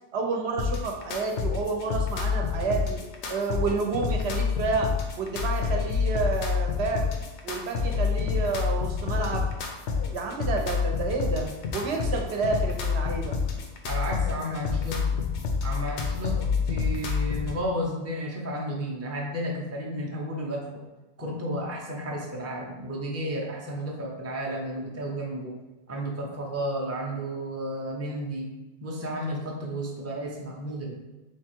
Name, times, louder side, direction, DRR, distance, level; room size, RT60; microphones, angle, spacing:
voice 1, 0.1-3.0 3.3-4.9 5.2-7.0 7.4-9.4 10.1-13.4, right 4 dB, 70° right, 1 dB, 1.0 m, -29 dB
sound 1, 0.6-17.6, left 5 dB, 85° left, 1.0 m, -28 dB
voice 2, 13.8-15.2 15.6-20.8 21.2-25.6 25.9-28.5 28.8-30.9, equal, 15° right, -2 dB, 0.6 m, -32 dB
3.5 x 3.1 x 4.4 m, 1.1 s
omnidirectional pair, 1.1 m